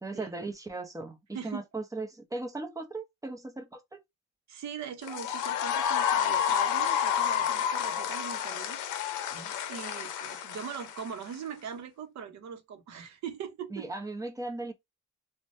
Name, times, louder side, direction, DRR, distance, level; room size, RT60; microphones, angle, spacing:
voice 1, 0.0-1.2 1.4-4.0 13.7-14.7, right 2 dB, 10° right, 0.7 m, -37 dB
voice 2, 4.5-8.8 9.3-13.9, right 7 dB, 65° right, 0.8 m, -41 dB
sound 1, 5.0-11.3, left 9 dB, 80° left, 0.6 m, -30 dB
3.0 x 2.2 x 2.6 m
cardioid pair, 90°, 30 cm